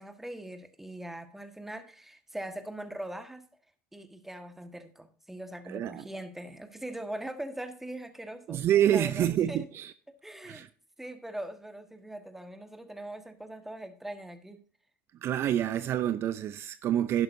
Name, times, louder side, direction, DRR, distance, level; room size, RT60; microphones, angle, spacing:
voice 1, 0.0-3.5 3.9-9.7 10.2-10.7 11.0-14.6, right 1 dB, 5° right, 1.4 m, -41 dB
voice 2, 5.7-6.0 8.5-9.9 10.4-10.7 15.2-17.2, right 11 dB, 50° right, 0.5 m, -27 dB
11.0 x 11.0 x 2.7 m
supercardioid pair, 100°, 5 cm